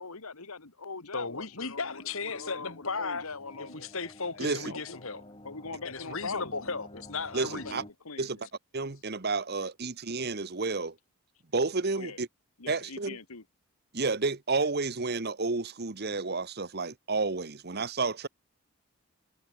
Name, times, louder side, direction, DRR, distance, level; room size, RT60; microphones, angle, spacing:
voice 1, 0.0-3.9 4.4-5.1 5.4-6.8 7.5-8.5 11.9-12.2 12.6-13.4, left 4 dB, 85° left, 1.9 m, -42 dB
sound 1, 1.0-7.9, left 1 dB, 25° left, 7.9 m, -51 dB
voice 2, 1.1-3.3 3.6-5.2 5.8-7.7, left 4 dB, 65° left, 2.4 m, -36 dB
voice 3, 4.4-4.7 7.3-7.8 8.2-8.4 8.7-10.9 11.5-12.3 12.7-13.2 13.9-18.3, right 3 dB, 45° right, 1.1 m, -31 dB
head